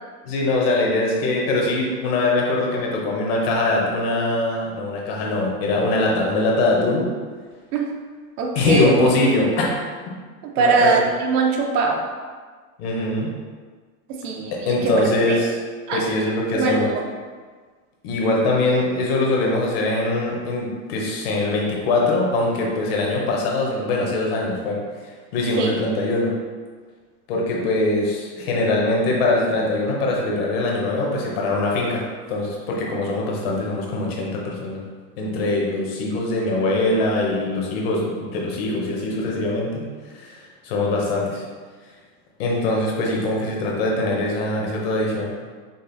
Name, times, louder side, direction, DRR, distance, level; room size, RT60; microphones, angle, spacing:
voice 1, 0.2-7.1 8.5-9.8 10.6-11.0 12.8-13.3 14.5-15.5 15.9-16.9 18.0-26.4 27.3-34.8 35.2-39.9 40.1-41.4 42.4-45.3, left 2 dB, 40° left, -2 dB, 0.9 m, -22 dB
voice 2, 8.4-8.9 10.6-12.1 14.1-15.4 15.9-16.0 16.5-17.0 25.6-25.7, right 4 dB, 85° right, 1 dB, 0.9 m, -21 dB
5.3 x 2.5 x 3.9 m, 1.5 s
supercardioid pair, 180°, 45 cm